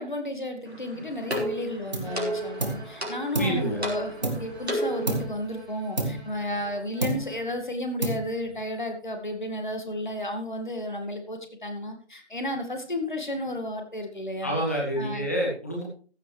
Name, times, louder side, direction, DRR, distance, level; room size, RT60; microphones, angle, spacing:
voice 1, 0.0-14.6 15.0-15.3, left 1 dB, 45° left, 6 dB, 2.1 m, -33 dB
sound 1, 0.7-5.2, equal, 65° right, 4.1 m, -33 dB
sound 2, 1.3-1.6 1.9-2.9 3.3-4.7 5.1-5.5 6.0-6.7 7.0-7.5 8.0-8.6, right 2 dB, 40° right, 1.8 m, -31 dB
Bowed string instrument, 2.0-7.7, right 2 dB, 25° right, 7.5 m, -46 dB
voice 2, 3.3-3.8 14.4-15.8, right 1 dB, 15° left, -3 dB, 1.8 m, -27 dB
15.0 x 9.7 x 3.3 m, 0.40 s
figure-of-eight pair, 165°, 34 cm